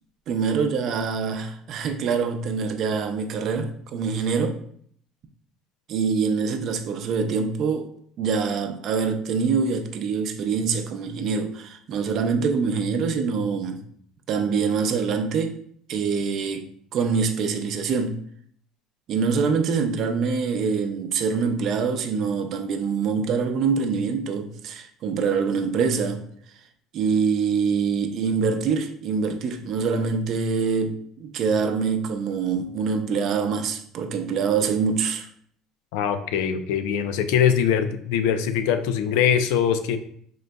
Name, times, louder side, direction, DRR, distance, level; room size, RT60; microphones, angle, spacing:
voice 1, 0.3-4.6 5.9-7.9 8.2-13.8 14.3-15.6 15.9-18.2 19.1-26.2 26.9-35.3, right 5 dB, 55° right, 0.6 m, -25 dB
voice 2, 35.9-40.0, left 8 dB, 85° left, 0.4 m, -22 dB
5.1 x 3.8 x 2.2 m
cardioid pair, 120°, 0 cm